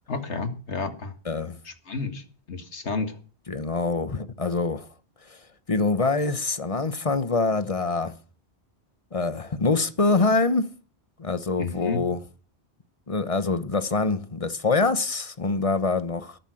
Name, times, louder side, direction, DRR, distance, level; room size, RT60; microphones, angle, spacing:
voice 1, 0.1-1.1 1.7-3.2 11.6-12.0, left 4 dB, 85° left, 2.2 m, -31 dB
voice 2, 1.3-1.6 3.5-4.9 5.7-8.1 9.1-10.7 11.2-12.2 13.1-16.4, left 3 dB, 35° left, 1.0 m, -25 dB
13.5 x 11.0 x 6.4 m
omnidirectional pair, 1.1 m